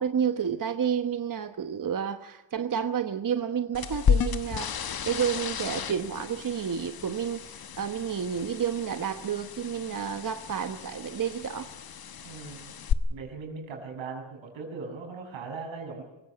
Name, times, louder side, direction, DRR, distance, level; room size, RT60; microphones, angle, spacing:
voice 1, 0.0-11.7, right 8 dB, 45° right, 8 dB, 1.1 m, -30 dB
sound 1, 3.7-12.9, left 7 dB, 50° left, 1.1 m, -32 dB
voice 2, 12.2-12.7 13.1-16.0, right 4 dB, 85° right, 2 dB, 6.6 m, -39 dB
24.5 x 16.0 x 7.9 m, 1.0 s
cardioid pair, 80°, 45 cm